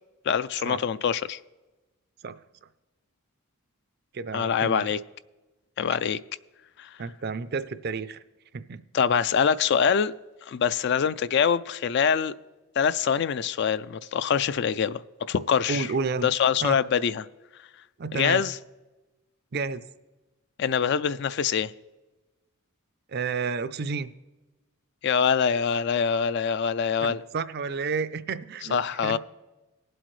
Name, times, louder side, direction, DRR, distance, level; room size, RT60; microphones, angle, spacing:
voice 1, 0.3-1.4 4.3-5.0 5.8-6.2 6.8-7.0 8.9-10.1 10.5-12.3 12.8-15.0 15.3-15.9 16.2-17.3 18.1-18.6 20.6-21.7 25.0-27.2 28.7-29.2, left 7 dB, 50° left, 0.3 m, -24 dB
voice 2, 4.1-4.9 7.0-8.2 8.5-8.8 15.7-16.3 16.6-16.8 18.0-18.4 19.5-19.8 23.1-24.1 27.0-28.8 29.0-29.2, right 4 dB, 45° right, 0.4 m, -31 dB
19.0 x 7.8 x 3.2 m
head